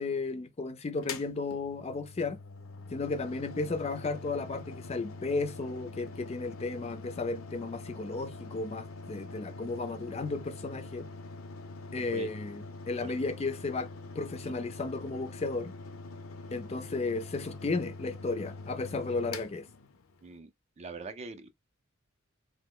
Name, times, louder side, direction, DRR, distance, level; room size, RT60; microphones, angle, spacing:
voice 1, 0.0-2.4 2.9-11.1 11.9-13.9 14.1-15.7 16.5-19.7, left 3 dB, 30° left, 0.4 m, -34 dB
Mechanical fan, 1.0-20.4, left 3 dB, 80° left, 0.6 m, -44 dB
voice 2, 20.8-21.5, right 3 dB, 30° right, 0.4 m, -42 dB
3.0 x 2.0 x 3.6 m
head